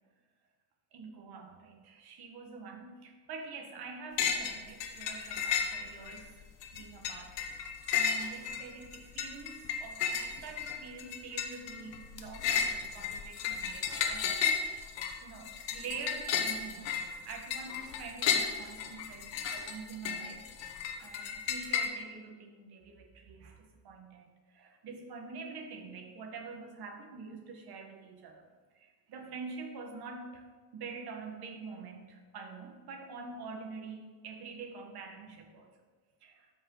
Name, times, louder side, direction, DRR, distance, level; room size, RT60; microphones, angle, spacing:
voice 1, 0.9-6.4 6.7-7.4 7.9-14.6 15.2-20.5 21.0-30.5 30.7-35.7 36.2-36.5, right 4 dB, 60° right, 3 dB, 1.6 m, -46 dB
sound 1, 4.2-4.6 4.8-6.2 6.6-21.9, left 7 dB, 85° left, 1.2 m, -33 dB
13.0 x 5.5 x 3.9 m, 1.4 s
cardioid pair, 125°, 42 cm